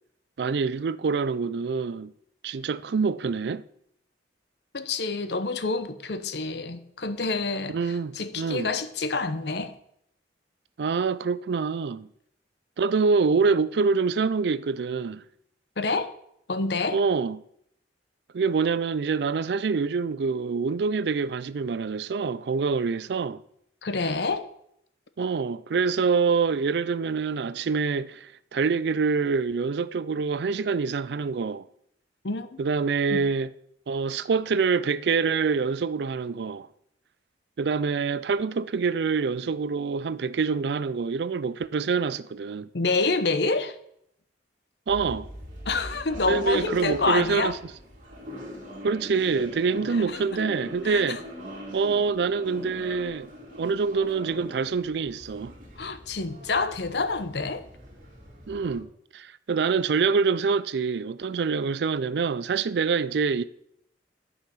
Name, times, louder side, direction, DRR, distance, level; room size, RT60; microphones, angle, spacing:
voice 1, 0.4-2.1 2.4-3.6 7.7-8.7 10.8-12.1 12.8-15.2 16.9-17.4 18.3-23.4 25.2-31.6 32.6-33.5 33.9-36.7 37.6-42.7 44.9-45.3 46.2-47.6 48.8-51.2 51.7-53.3 53.6-55.5 58.5-58.9 59.1-63.4, right 5 dB, 65° right, 0.4 m, -26 dB
voice 2, 4.7-9.7 15.8-16.1 16.5-17.0 23.8-24.5 32.2-32.5 33.1-33.2 42.7-43.8 45.7-47.5 50.1-50.2 50.8-51.2 55.8-57.6, left 3 dB, 65° left, 0.8 m, -27 dB
sound 1, 44.9-58.8, equal, 45° right, 2.3 m, -41 dB
12.0 x 5.6 x 5.6 m
head